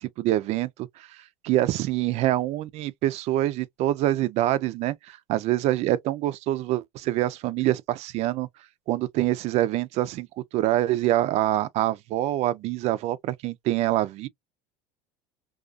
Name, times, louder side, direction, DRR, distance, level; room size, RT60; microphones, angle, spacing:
voice 1, 0.0-1.2 1.4-8.5 8.9-10.3 10.5-14.3, right 14 dB, 55° right, 0.4 m, -25 dB
2.4 x 2.3 x 2.4 m
supercardioid pair, 95°, 13 cm